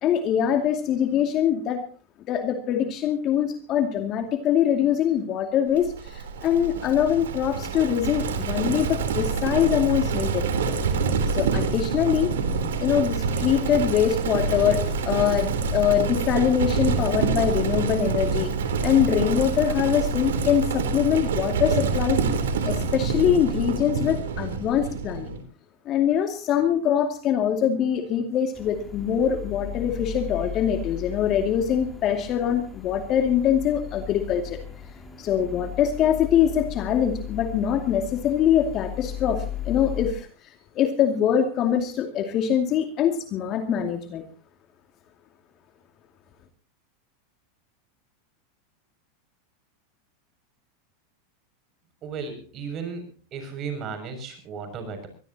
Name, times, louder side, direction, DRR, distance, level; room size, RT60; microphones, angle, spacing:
voice 1, 0.0-1.8 2.3-10.4 11.3-12.3 12.8-18.5 18.8-22.2 22.7-25.3 25.9-34.6 35.2-44.2, left 9 dB, 40° left, 5 dB, 2.5 m, -23 dB
Livestock farm animals working animals, 5.7-25.4, right 5 dB, 90° right, 3.6 m, -26 dB
sound 1, 28.5-40.1, left 10 dB, 10° left, 4.1 m, -36 dB
voice 2, 52.0-53.0 53.3-55.1, right 5 dB, 40° right, 7 dB, 6.8 m, -34 dB
23.5 x 17.5 x 2.9 m, 0.36 s
supercardioid pair, 120°, 0 cm